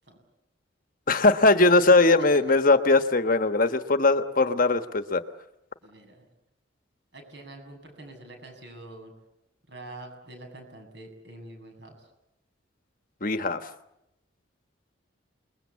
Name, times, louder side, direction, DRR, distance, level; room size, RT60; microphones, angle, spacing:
voice 1, 1.1-5.2 13.2-13.7, left 3 dB, 45° left, 9 dB, 1.2 m, -20 dB
voice 2, 2.2-2.6 5.8-6.3 7.1-9.1 9.7-12.1, right 2 dB, 60° right, 4 dB, 7.9 m, -46 dB
29.0 x 20.5 x 8.4 m, 0.86 s
head